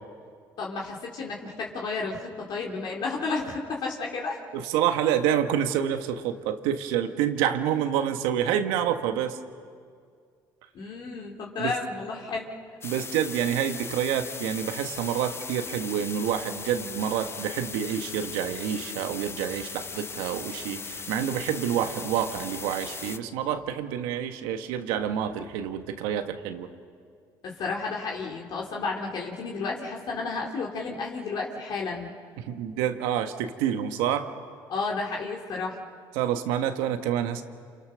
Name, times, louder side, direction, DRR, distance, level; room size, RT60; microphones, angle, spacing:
voice 1, 0.6-4.4 10.7-12.5 27.4-32.1 34.7-35.8, left 4 dB, 60° left, -2 dB, 3.2 m, -32 dB
voice 2, 4.5-9.4 11.6-11.7 12.8-26.7 32.5-34.3 36.1-37.4, right 9 dB, 90° right, 7 dB, 1.5 m, -28 dB
sound 1, 12.8-23.2, left 5 dB, 30° left, 0.9 m, -38 dB
28.5 x 28.5 x 6.5 m, 2.2 s
supercardioid pair, 85°, 8 cm